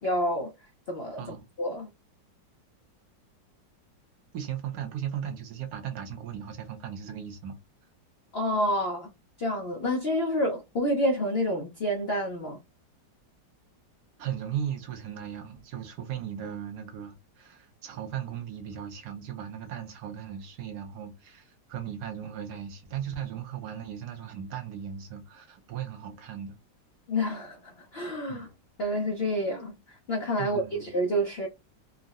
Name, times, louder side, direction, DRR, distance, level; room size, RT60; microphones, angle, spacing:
voice 1, 0.0-0.5 0.9-1.2 1.6-1.9 8.3-9.1 9.4-12.6 27.1-28.5 28.8-31.5, equal, 65° left, 0.6 m, -28 dB
voice 2, 4.3-7.6 14.2-26.6 28.3-28.5 30.4-30.9, right 9 dB, 70° right, 1.2 m, -37 dB
3.6 x 2.0 x 2.3 m
omnidirectional pair, 1.9 m